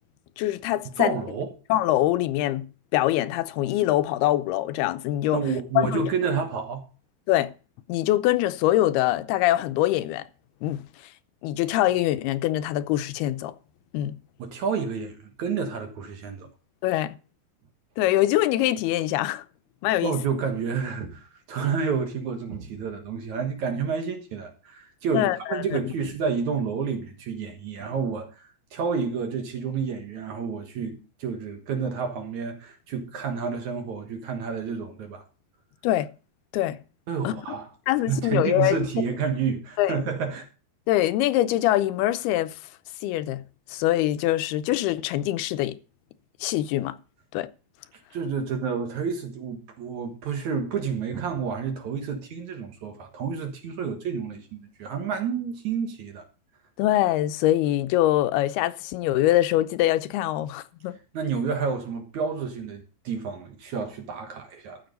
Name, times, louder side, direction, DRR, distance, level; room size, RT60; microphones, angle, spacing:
voice 1, 0.4-1.2 1.7-2.7 2.9-5.4 5.8-6.0 7.3-7.5 7.9-10.2 10.6-10.8 11.4-13.5 13.9-14.2 16.8-17.2 18.0-19.4 19.8-20.2 25.1-25.6 35.8-36.1 36.5-36.8 37.2-37.4 37.9-38.8 39.8-40.0 40.9-42.5 43.0-43.4 43.7-45.8 46.4-46.9 47.3-47.5 56.8-60.9, left 14 dB, 85° left, 2.6 m, -23 dB
voice 2, 1.0-1.5 5.3-6.8 14.4-16.5 20.0-35.2 37.1-37.7 38.1-40.5 48.1-56.2 61.1-64.8, right 6 dB, 60° right, 2.4 m, -29 dB
14.0 x 6.8 x 5.2 m
omnidirectional pair, 4.5 m